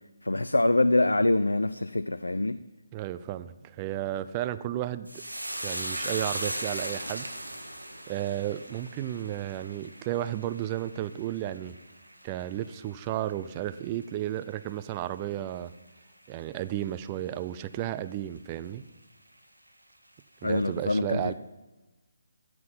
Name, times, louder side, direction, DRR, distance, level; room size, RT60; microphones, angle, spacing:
voice 1, 0.2-2.6 20.4-21.3, left 2 dB, 80° left, 13 dB, 0.5 m, -25 dB
voice 2, 2.9-5.1 5.6-7.3 8.1-11.8 12.2-15.7 16.3-18.8 20.4-21.3, right 13 dB, 25° right, 13 dB, 0.5 m, -33 dB
sound 1, 5.1-13.7 14.0-14.6 14.9-15.1, right 1 dB, 90° right, 1.6 m, -38 dB
15.0 x 6.0 x 8.9 m, 1.1 s
figure-of-eight pair, 145°, 0 cm